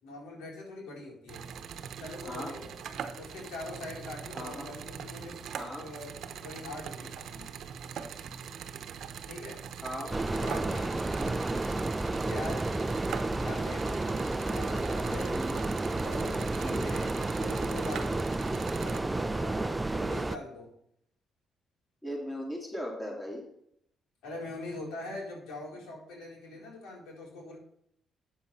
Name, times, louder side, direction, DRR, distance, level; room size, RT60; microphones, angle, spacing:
voice 1, 0.0-1.4 2.0-2.7 3.2-5.4 5.8-6.1 6.4-7.5 9.3-9.6 10.3-11.0 12.3-12.7 13.2-13.9 14.5-15.4 16.0-18.3 18.8-20.7 24.2-27.6, left 2 dB, 90° left, -3 dB, 4.2 m, -42 dB
sound 1, 1.3-19.0, right 7 dB, 70° right, 0.9 m, -42 dB
voice 2, 4.3-4.7 5.6-5.9 9.8-10.2 11.2-11.5 15.3-15.6 16.6-17.0 22.0-23.4, equal, 15° left, -2 dB, 3.8 m, -38 dB
sound 2, 10.1-20.4, right 2 dB, 15° right, 0.5 m, -31 dB
9.1 x 7.4 x 4.3 m, 0.70 s
cardioid pair, 90°, 0 cm